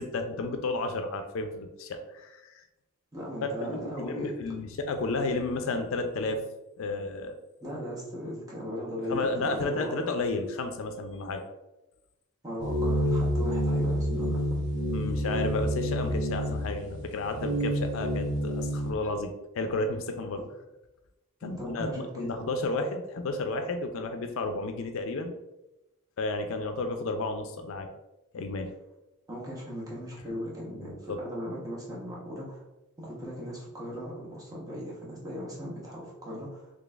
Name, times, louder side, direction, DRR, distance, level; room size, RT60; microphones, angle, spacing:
voice 1, 0.0-2.6 3.4-6.4 6.8-7.4 9.1-11.4 14.9-20.4 21.4-25.3 26.2-27.9 28.3-28.7 30.8-31.2, left 2 dB, 65° left, 6 dB, 0.4 m, -32 dB
voice 2, 3.1-4.3 7.6-10.1 12.4-14.6 20.4-20.5 21.4-22.3 29.3-32.6 33.0-36.7, equal, 15° right, -5 dB, 0.9 m, -38 dB
sound 1, 12.6-18.9, equal, 55° right, 0.6 m, -28 dB
3.9 x 3.2 x 2.3 m, 0.98 s
head